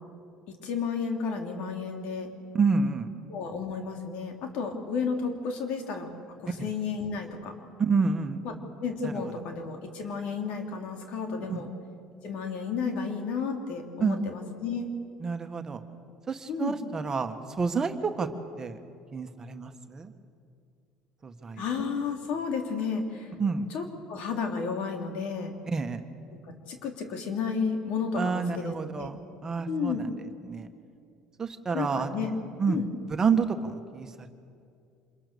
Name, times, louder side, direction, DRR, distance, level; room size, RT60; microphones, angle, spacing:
voice 1, 0.6-2.3 3.3-6.1 6.3-7.5 8.4-8.5 8.8-11.7 12.2-14.9 16.5-16.8 21.6-23.3 23.7-25.5 26.3-26.4 26.7-29.1 29.7-30.1 31.7-32.3 32.7-32.9, left 5 dB, 70° left, 3 dB, 3.4 m, -32 dB
voice 2, 2.5-3.1 6.6-6.7 7.8-8.4 9.0-9.1 11.5-11.6 14.0-14.2 15.2-15.8 16.3-18.3 18.6-18.8 19.1-20.1 21.2-21.6 23.4-23.6 25.7-26.0 28.2-30.1 30.4-30.7 31.4-32.8 33.2-34.3, right 5 dB, 25° right, 7 dB, 1.7 m, -29 dB
26.5 x 22.0 x 7.0 m, 2.4 s
supercardioid pair, 95°, 2 cm